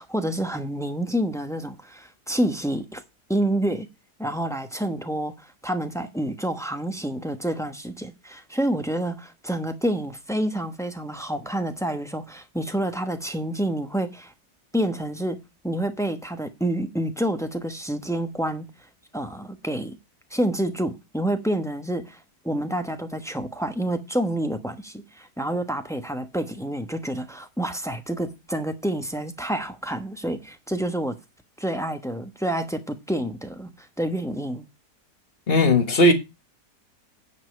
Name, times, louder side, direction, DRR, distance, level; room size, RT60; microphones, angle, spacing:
voice 1, 0.0-3.0 3.3-3.9 4.2-14.3 14.7-15.4 15.6-18.7 19.1-20.0 20.3-31.1 31.6-34.7, right 1 dB, 5° left, 0.7 m, -28 dB
voice 2, 35.5-36.1, left 1 dB, 35° left, 1.6 m, -17 dB
9.9 x 5.2 x 6.2 m
omnidirectional pair, 1.7 m